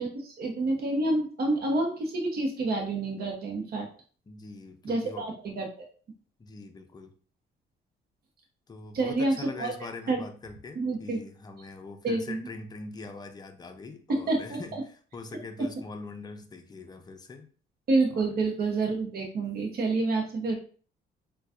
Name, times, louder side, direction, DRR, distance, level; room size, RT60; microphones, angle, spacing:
voice 1, 0.0-3.9 4.8-5.9 8.9-9.7 10.1-10.2 10.8-11.2 12.0-12.5 14.1-14.8 17.9-20.6, right 2 dB, 50° right, 1 dB, 0.9 m, -28 dB
voice 2, 4.3-5.3 6.4-7.1 8.7-17.5 18.1-18.3, left 3 dB, 20° left, 5 dB, 0.5 m, -43 dB
4.0 x 2.3 x 2.4 m, 0.41 s
cardioid pair, 90°, 20 cm